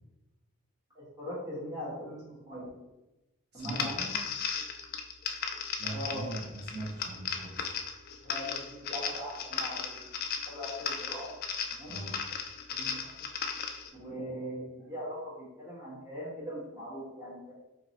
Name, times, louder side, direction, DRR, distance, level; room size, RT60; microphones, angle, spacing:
voice 1, 0.9-2.8 3.5-4.2 5.9-6.3 8.2-10.1 10.4-11.3 11.8-12.0 12.7-13.1 13.9-17.5, equal, 15° right, -9 dB, 1.4 m, -40 dB
voice 2, 3.5-3.9 5.8-7.7 11.9-12.1, right 2 dB, 50° right, -7 dB, 1.1 m, -40 dB
sound 1, 3.6-13.9, left 6 dB, 45° left, 0.3 m, -36 dB
3.0 x 2.8 x 4.2 m, 1.0 s
head